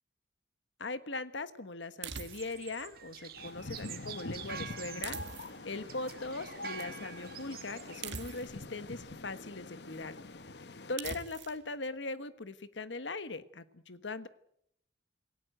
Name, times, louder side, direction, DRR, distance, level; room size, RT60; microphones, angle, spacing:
voice 1, 0.8-5.2 5.6-10.2 10.9-14.3, left 3 dB, 85° left, 13 dB, 1.4 m, -40 dB
sound 1, 2.0-2.7 5.0-5.8 8.0-8.7 11.0-11.6, right 6 dB, 85° right, 2.0 m, -42 dB
sound 2, 2.3-8.4, right 8 dB, 50° right, 2.1 m, -47 dB
sound 3, 3.4-11.0, left 2 dB, 70° left, 1.0 m, -45 dB
27.0 x 18.0 x 8.0 m, 0.72 s
head